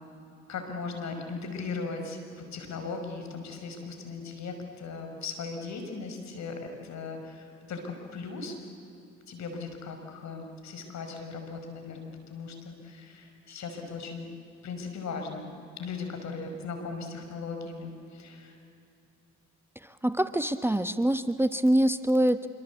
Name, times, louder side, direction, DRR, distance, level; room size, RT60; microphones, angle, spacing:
voice 1, 0.5-8.5 9.3-14.3 14.6-18.6, left 4 dB, 60° left, 5 dB, 5.2 m, -38 dB
voice 2, 19.8-22.5, right 1 dB, 5° right, 11 dB, 1.0 m, -25 dB
26.0 x 24.0 x 8.3 m, 2.7 s
supercardioid pair, 60°, 31 cm